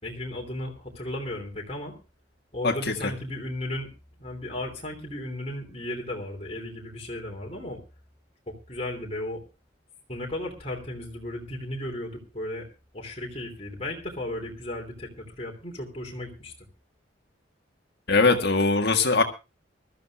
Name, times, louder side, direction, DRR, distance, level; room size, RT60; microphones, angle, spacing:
voice 1, 0.0-1.9 2.5-3.9 4.2-7.8 8.5-9.4 10.1-12.7 12.9-16.5, left 1 dB, 30° left, 1 dB, 3.2 m, -35 dB
voice 2, 18.1-19.2, left 3 dB, 55° left, 5 dB, 1.7 m, -21 dB
24.0 x 13.5 x 2.4 m, 0.28 s
head